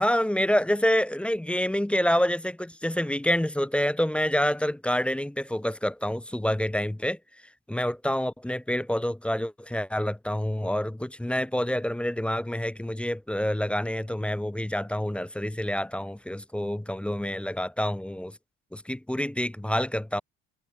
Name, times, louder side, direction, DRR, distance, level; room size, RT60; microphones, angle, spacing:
voice 1, 0.0-7.2 7.7-18.4 18.7-20.2, equal, 5° left, 0.6 m, -27 dB
cardioid pair, 115°, 34 cm